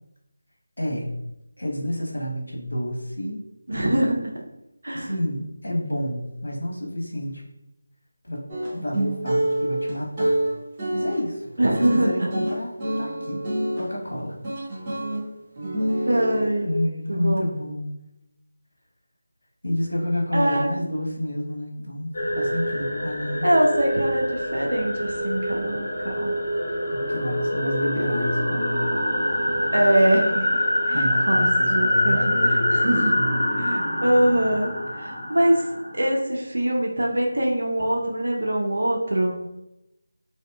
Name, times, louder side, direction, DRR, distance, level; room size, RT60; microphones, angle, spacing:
voice 1, 0.8-1.1 1.6-3.4 4.9-7.4 8.2-8.4 8.7-10.4 10.9-11.5 11.8-13.4 13.7-14.3 15.9-16.1 16.6-17.9 19.6-23.5 26.9-28.8 30.9-33.4, equal, 80° left, -2 dB, 0.8 m, -29 dB
voice 2, 3.7-4.3 4.8-5.1 11.6-12.3 14.9-15.2 16.0-16.7 17.1-17.5 20.3-20.8 23.4-26.3 29.7-30.5 30.9-33.2 33.6-35.7 35.9-39.4, right 1 dB, 75° right, -1 dB, 0.5 m, -23 dB
sound 1, 8.5-13.9 14.4-15.2 15.6-16.5, right 1 dB, 25° right, 0.7 m, -26 dB
sound 2, 22.1-36.1, left 1 dB, 45° left, 0.8 m, -25 dB
2.7 x 2.3 x 2.2 m, 0.90 s
figure-of-eight pair, 165°, 0 cm